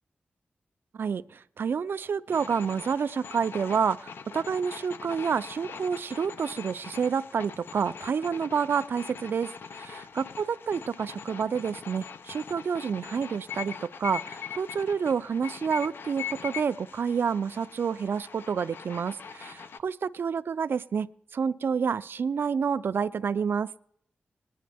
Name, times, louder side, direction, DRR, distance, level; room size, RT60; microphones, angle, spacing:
voice 1, 0.9-21.1 21.3-23.7, right 6 dB, 75° right, 15 dB, 0.4 m, -29 dB
sound 1, 2.3-19.8, left 7 dB, 75° left, 0.5 m, -42 dB
21.0 x 10.0 x 3.4 m, 0.69 s
wide cardioid pair, 105°, 4 cm